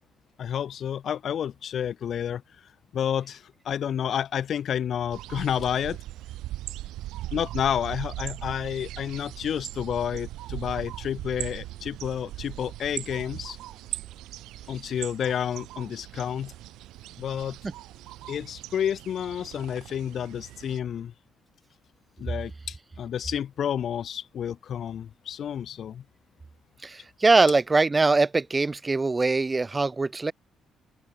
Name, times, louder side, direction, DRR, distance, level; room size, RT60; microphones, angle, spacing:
voice 1, 0.4-2.4 2.9-6.0 7.3-13.6 14.7-16.5 17.2-17.6 18.3-21.1 22.2-26.0, left 9 dB, 60° left, 0.8 m, -30 dB
sound 1, 5.1-20.8, right 15 dB, 90° right, 4.3 m, -39 dB
voice 2, 26.8-30.3, right 3 dB, 25° right, 0.8 m, -22 dB
open air
cardioid pair, 90°, 0 cm